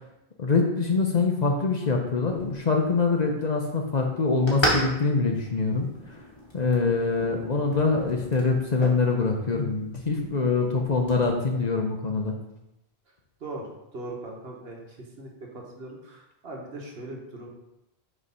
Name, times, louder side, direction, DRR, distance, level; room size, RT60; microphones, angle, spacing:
voice 1, 0.4-5.9 6.5-12.3, left 4 dB, 45° left, 2 dB, 0.7 m, -24 dB
sound 1, 2.3-11.2, equal, 25° left, 1.4 m, -35 dB
voice 2, 13.4-17.5, right 2 dB, 70° right, -1 dB, 1.5 m, -40 dB
6.3 x 3.3 x 5.3 m, 0.90 s
omnidirectional pair, 1.1 m